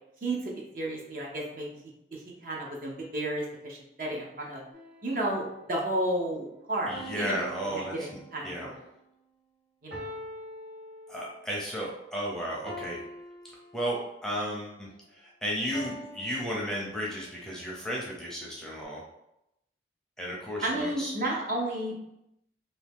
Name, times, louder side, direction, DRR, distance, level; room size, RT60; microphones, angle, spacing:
voice 1, 0.2-1.7 2.1-4.6 5.0-7.4 7.7-8.8 9.8-10.1 20.6-22.0, right 1 dB, 50° right, -2 dB, 0.8 m, -32 dB
sound 1, 4.7-5.6 6.9-8.8 9.9-11.5 12.7-14.3 15.7-17.3, equal, 80° right, 1.2 m, -45 dB
voice 2, 6.9-8.1 8.4-8.7 11.1-13.0 13.7-19.0 20.2-21.1, equal, 5° left, -4 dB, 0.6 m, -34 dB
2.7 x 2.7 x 3.5 m, 0.83 s
head